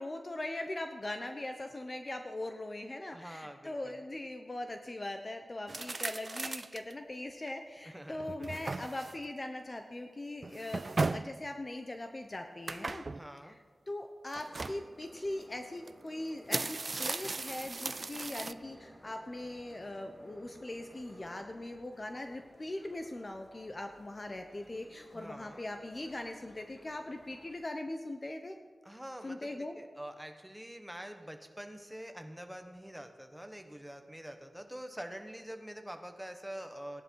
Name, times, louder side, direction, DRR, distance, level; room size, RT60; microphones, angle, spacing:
voice 1, 0.0-13.1 13.4-13.6 13.9-28.6 29.2-29.8, left 1 dB, 35° left, 5 dB, 0.9 m, -41 dB
voice 2, 3.1-4.0 7.8-8.7 13.1-13.6 25.1-25.7 28.8-37.0, equal, 5° right, 6 dB, 1.4 m, -46 dB
sound 1, 5.7-6.9 7.5-7.6 8.1-9.3 10.4-11.4 12.7-13.3 14.3-14.8 15.9-16.0 16.3-18.5, right 3 dB, 45° right, 0.3 m, -36 dB
sound 2, 14.4-21.4, right 2 dB, 25° right, 1.0 m, -55 dB
sound 3, 17.5-27.5, left 2 dB, 60° left, 1.7 m, -60 dB
17.0 x 11.0 x 4.7 m, 1.5 s
wide cardioid pair, 70°, 0 cm